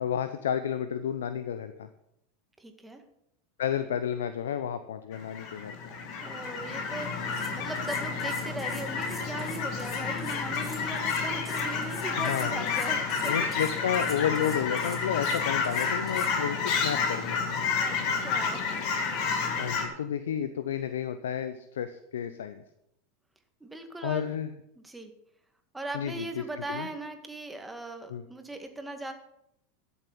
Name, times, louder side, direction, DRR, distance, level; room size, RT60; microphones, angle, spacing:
voice 1, 0.0-1.9 3.6-5.9 12.2-12.7 13.2-17.4 19.6-22.6 24.0-24.5 25.9-26.4 26.7-26.9 28.1-28.2, left 9 dB, 80° left, 11 dB, 0.7 m, -31 dB
voice 2, 2.6-3.0 6.2-13.5 17.8-18.7 19.4-19.8 23.6-24.4 24.8-25.1 25.7-29.1, right 2 dB, 10° right, 5 dB, 1.9 m, -39 dB
Fowl / Chirp tweet, 5.1-19.9, left 5 dB, 55° left, 2.3 m, -30 dB
sound 1, 7.0-7.1 7.3-16.3, left 1 dB, 10° left, 4.2 m, -47 dB
12.5 x 7.2 x 6.9 m, 0.79 s
hypercardioid pair, 90°, 0 cm